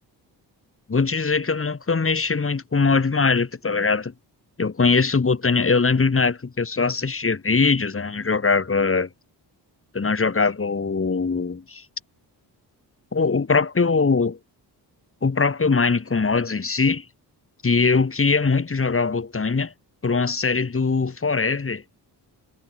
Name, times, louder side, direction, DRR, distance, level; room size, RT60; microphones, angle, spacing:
voice 1, 0.9-4.1 4.6-9.1 9.9-11.8 13.1-14.4 15.2-17.0 17.6-19.7 20.0-21.8, left 4 dB, 30° left, 3.1 m, -21 dB
cardioid pair, 90°, 42 cm